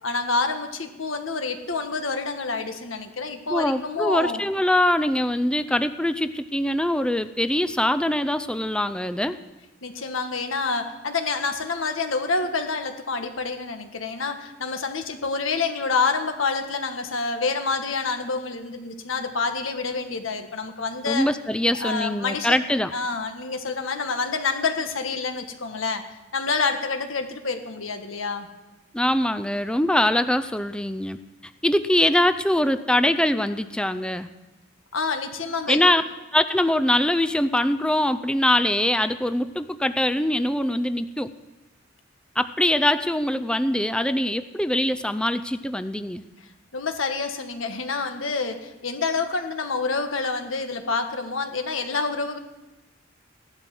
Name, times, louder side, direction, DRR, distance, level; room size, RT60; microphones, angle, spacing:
voice 1, 0.0-4.4 9.8-21.3 21.8-22.6 22.9-26.0 26.3-28.5 34.9-35.8 46.7-52.4, left 4 dB, 85° left, 6 dB, 1.6 m, -27 dB
voice 2, 3.5-9.4 21.1-22.9 28.9-31.2 31.6-34.3 35.7-36.0 36.3-41.3 42.4-46.2, left 1 dB, 5° left, 11 dB, 0.4 m, -23 dB
16.0 x 11.5 x 6.1 m, 1.0 s
head